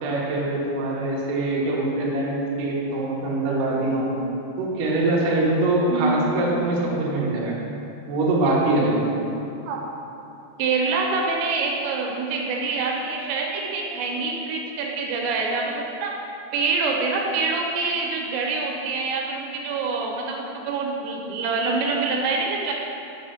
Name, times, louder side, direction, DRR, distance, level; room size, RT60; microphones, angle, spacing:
voice 1, 0.0-4.1 4.6-7.6 8.1-9.0, right 2 dB, 70° right, -5 dB, 2.1 m, -23 dB
voice 2, 5.9-6.4 9.7-9.8 10.6-16.1 16.5-22.7, right 4 dB, 90° right, 0 dB, 2.9 m, -25 dB
5.6 x 4.8 x 5.4 m, 2.8 s
omnidirectional pair, 5.1 m